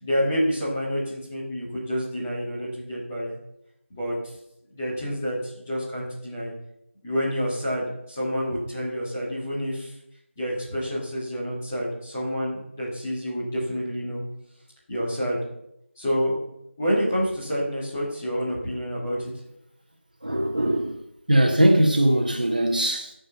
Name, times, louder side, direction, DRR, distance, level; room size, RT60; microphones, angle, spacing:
voice 1, 0.0-3.3 3.9-4.1 4.7-6.5 7.0-9.9 10.4-14.2 14.9-15.4 15.9-16.4 16.8-19.2, equal, 10° left, 1.6 m, -28 dB
voice 2, 20.2-21.0 21.3-23.1, right 1 dB, 40° right, 1.3 m, -21 dB
10.0 x 5.4 x 7.1 m
figure-of-eight pair, 175°, 7 cm